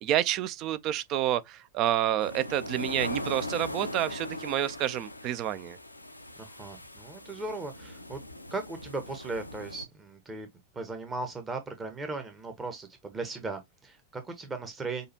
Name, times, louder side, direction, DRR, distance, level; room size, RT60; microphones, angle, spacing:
voice 1, 0.0-5.8, right 12 dB, 40° right, 0.5 m, -29 dB
sound 1, 2.2-9.8, left 1 dB, 85° left, 0.6 m, -40 dB
voice 2, 6.4-8.2 8.5-10.5 10.7-15.1, right 3 dB, 20° right, 0.9 m, -37 dB
6.5 x 2.5 x 2.7 m
figure-of-eight pair, 90°, 0 cm